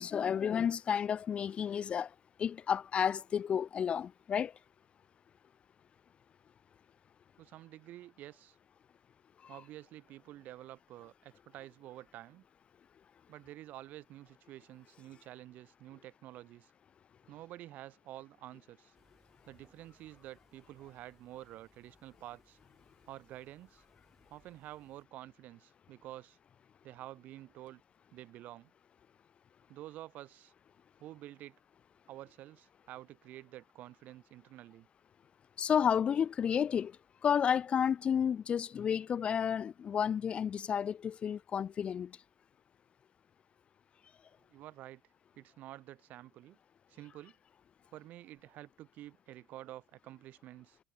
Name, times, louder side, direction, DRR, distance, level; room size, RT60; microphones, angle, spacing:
voice 1, 0.0-4.5 9.4-9.6 35.6-37.0 37.2-42.2, left 8 dB, 35° left, 0.5 m, -31 dB
voice 2, 7.4-8.6 9.5-12.4 13.3-16.7 17.3-18.9 19.5-22.6 23.1-23.8 24.3-26.4 26.8-27.8 28.1-28.7 29.7-30.5 31.0-31.6 32.1-34.9 44.5-45.0 45.4-46.6 46.9-47.3 47.9-50.8, right 14 dB, 55° right, 2.1 m, -49 dB
sound 1, 18.9-25.0, right 2 dB, 10° right, 5.0 m, -70 dB
supercardioid pair, 115°, 3 cm